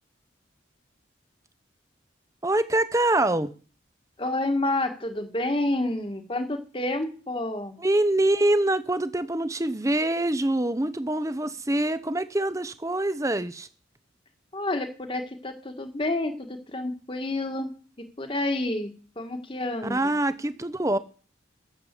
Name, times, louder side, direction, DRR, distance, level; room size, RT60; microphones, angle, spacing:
voice 1, 2.4-3.5 7.8-13.7 19.9-21.0, right 1 dB, 15° right, 0.8 m, -25 dB
voice 2, 4.2-7.8 14.5-17.7 18.0-20.2, left 2 dB, 25° left, 1.6 m, -29 dB
13.5 x 7.4 x 8.2 m
head